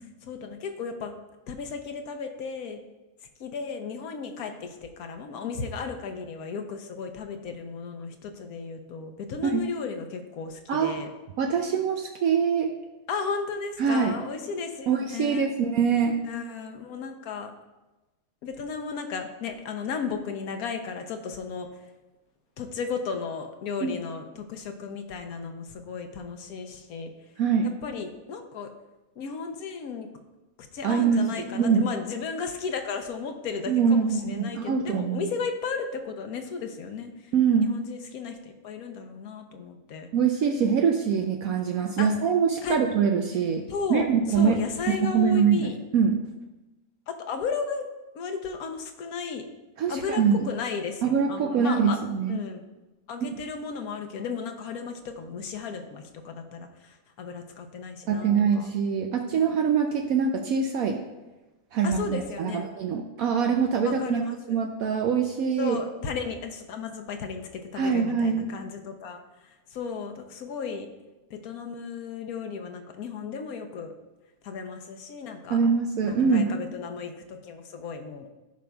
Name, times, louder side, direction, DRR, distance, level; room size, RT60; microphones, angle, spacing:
voice 1, 0.2-1.2 1.5-2.8 3.4-11.1 13.1-15.5 16.2-17.5 18.4-21.7 22.6-27.1 27.8-28.7 29.2-30.1 30.7-37.3 37.6-40.1 42.0-42.1 42.6-42.8 43.7-45.7 47.1-47.9 48.1-49.4 49.9-52.0 52.3-52.6 53.1-58.7 61.8-62.6 63.8-64.6 65.6-70.9 71.3-73.9 74.4-75.6 76.0-78.3, left 5 dB, 70° left, 6 dB, 1.2 m, -34 dB
voice 2, 10.7-11.0 11.4-12.7 13.8-14.2 14.9-16.1 23.8-24.0 27.4-27.7 30.8-31.8 33.7-35.2 37.3-37.8 40.1-43.6 43.9-44.6 45.0-46.2 49.8-50.4 51.0-52.4 58.1-61.0 61.7-65.8 67.8-68.5 75.5-76.5, right 6 dB, 70° right, 3 dB, 1.0 m, -24 dB
15.0 x 5.2 x 2.3 m, 1.1 s
omnidirectional pair, 1.7 m